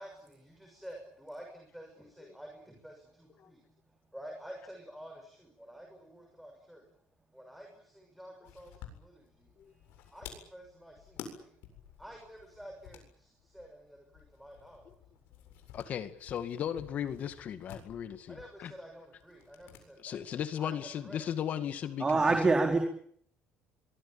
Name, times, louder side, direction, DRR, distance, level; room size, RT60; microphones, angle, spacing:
voice 1, 0.0-3.6 4.1-6.9 7.3-9.5 10.1-11.5 12.0-14.9 18.3-20.2 20.6-21.2, equal, ahead, 2 dB, 6.3 m, -50 dB
sound 1, 8.4-19.9 20.1-20.2 21.4-22.2, left 8 dB, 75° left, 7.8 m, -52 dB
voice 2, 15.7-18.7 20.0-22.4, left 9 dB, 45° left, 11 dB, 2.1 m, -36 dB
voice 3, 22.0-22.8, right 3 dB, 20° right, 3 dB, 4.5 m, -24 dB
24.0 x 22.5 x 9.0 m, 0.63 s
cardioid pair, 145°, 4 cm